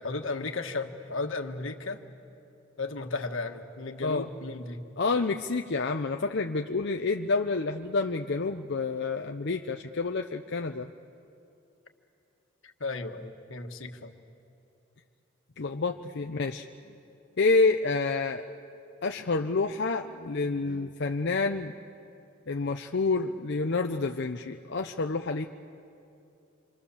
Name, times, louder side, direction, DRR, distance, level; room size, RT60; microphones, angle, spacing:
voice 1, 0.0-2.0 2.8-4.8 12.8-14.2, left 3 dB, 80° left, 5 dB, 1.5 m, -34 dB
voice 2, 5.0-10.9 15.6-16.7 17.4-18.4 19.0-21.7 22.5-25.5, left 3 dB, 60° left, 4 dB, 0.7 m, -28 dB
27.0 x 26.5 x 7.1 m, 2.7 s
head